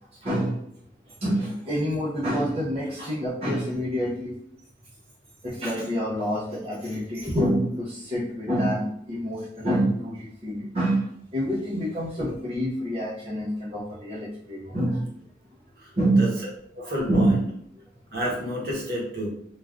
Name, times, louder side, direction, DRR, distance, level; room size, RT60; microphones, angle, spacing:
voice 1, 0.2-0.6 1.1-4.4 5.4-15.1 16.0-16.3 16.9-17.4 17.8-17.9, right 1 dB, 30° right, -9 dB, 0.6 m, -27 dB
voice 2, 15.8-16.3 16.7-17.3 18.1-19.3, equal, 55° right, -3 dB, 1.0 m, -30 dB
3.3 x 2.3 x 2.4 m, 0.71 s
head